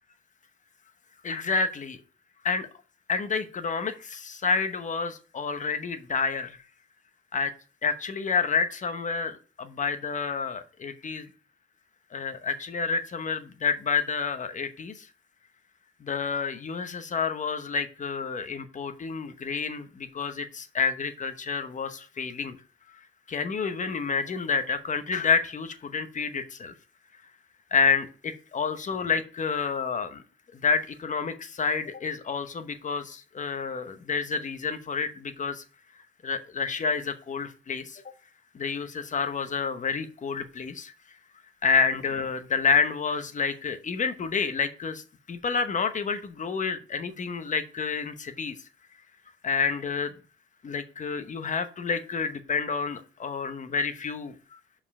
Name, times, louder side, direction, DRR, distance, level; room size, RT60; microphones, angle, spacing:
voice 1, 1.2-2.0 2.4-2.7 3.1-6.6 7.3-7.5 7.8-11.3 12.1-15.1 16.0-22.6 23.3-26.7 27.7-30.2 30.5-35.6 36.2-38.0 38.5-40.9 41.6-48.5 49.4-50.1 50.6-54.3, left 5 dB, 40° left, 10 dB, 0.9 m, -29 dB
5.4 x 4.9 x 5.3 m, 0.38 s
cardioid pair, 90°, 20 cm